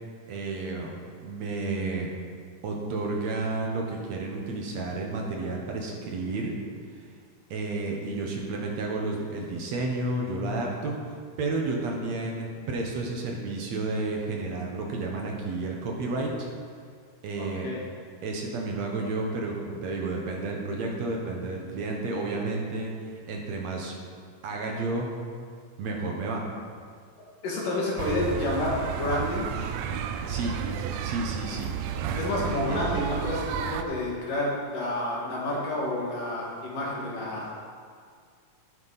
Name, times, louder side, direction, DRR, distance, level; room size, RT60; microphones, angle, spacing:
voice 1, 0.3-0.9 1.2-2.1 2.6-6.5 7.5-11.0 11.4-16.5 17.2-17.7 18.2-24.0 24.4-25.1 25.8-26.4 30.3-30.5 31.0-31.7 32.4-32.8, right 3 dB, 65° right, 0 dB, 2.2 m, -31 dB
voice 2, 17.4-17.8 27.4-29.5 32.2-37.6, left 1 dB, 85° left, -4 dB, 3.8 m, -29 dB
sound 1, 28.0-33.8, right 8 dB, 90° right, 1.5 m, -32 dB
10.5 x 10.0 x 4.1 m, 2.1 s
omnidirectional pair, 3.7 m